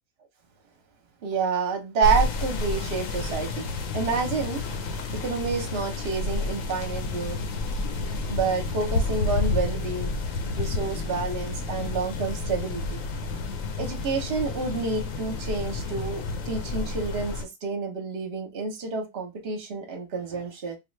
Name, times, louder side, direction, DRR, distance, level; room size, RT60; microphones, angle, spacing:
voice 1, 1.2-3.7 3.9-4.6 5.1-7.4 8.3-10.1 10.6-13.0 13.8-20.8, right 5 dB, 45° right, 1.0 m, -29 dB
sound 1, 2.0-17.5, left 3 dB, 65° left, 1.0 m, -30 dB
3.6 x 2.4 x 3.1 m
omnidirectional pair, 1.7 m